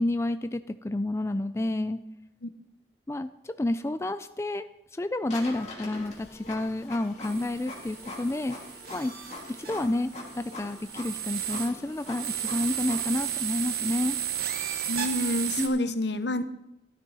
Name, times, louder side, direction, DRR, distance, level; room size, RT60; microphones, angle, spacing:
voice 1, 0.0-2.0 3.1-4.6 4.9-8.6 8.9-9.1 9.6-14.2 15.6-16.0, left 2 dB, 15° left, 11 dB, 0.3 m, -30 dB
Printer, 5.3-13.2, left 2 dB, 40° left, 2.8 m, -43 dB
sound 1, 7.2-15.7, right 10 dB, 60° right, 1.4 m, -34 dB
voice 2, 14.9-16.5, left 1 dB, 80° left, 10 dB, 0.9 m, -29 dB
13.5 x 12.0 x 4.1 m, 0.84 s
head